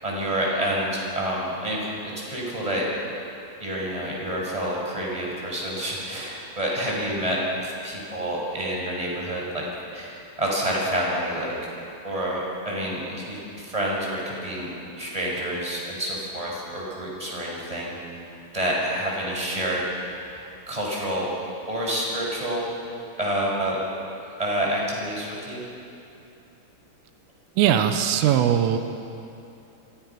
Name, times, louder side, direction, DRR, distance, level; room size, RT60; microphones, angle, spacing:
voice 1, 0.0-2.9 3.6-9.6 9.9-11.5 12.0-14.7 15.0-18.0 18.5-19.9 20.3-21.3 21.7-22.7 23.2-23.8 24.4-25.6, right 1 dB, 5° right, -3 dB, 6.1 m, -28 dB
voice 2, 27.6-28.8, right 10 dB, 90° right, 7 dB, 3.8 m, -20 dB
29.5 x 24.0 x 6.1 m, 2.7 s
omnidirectional pair, 5.7 m